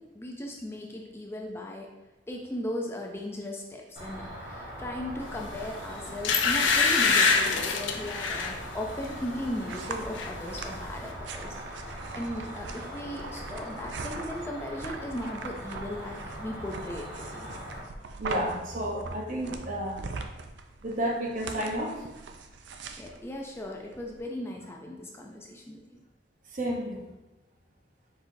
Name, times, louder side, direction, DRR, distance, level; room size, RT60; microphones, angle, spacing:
voice 1, 0.0-1.9 2.3-11.5 12.1-17.5 23.0-26.0, left 1 dB, 15° left, 0 dB, 0.3 m, -37 dB
Cricket, 4.0-17.8, equal, 25° right, 1.3 m, -41 dB
sound 1, 5.5-5.7 6.2-8.6 9.0-9.3 9.6-10.3 10.6-10.7, left 4 dB, 90° left, 0.5 m, -24 dB
sound 2, 9.0-24.2, right 4 dB, 70° right, 0.4 m, -42 dB
voice 2, 18.2-20.0 20.8-21.9 26.5-27.0, equal, 45° right, 0 dB, 0.8 m, -31 dB
4.5 x 4.4 x 2.6 m, 1.1 s
head